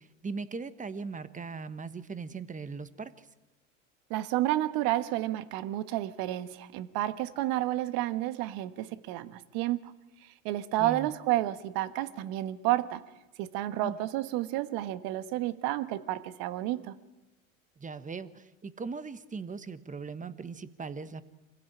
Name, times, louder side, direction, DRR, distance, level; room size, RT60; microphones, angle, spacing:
voice 1, 0.0-3.3 10.8-11.1 13.8-14.0 17.8-21.2, right 4 dB, 20° right, 13 dB, 1.3 m, -39 dB
voice 2, 4.1-9.9 10.2-13.0 13.4-16.9, right 15 dB, 60° right, 12 dB, 1.5 m, -31 dB
26.0 x 16.0 x 8.9 m, 1.1 s
hypercardioid pair, 80°, 40 cm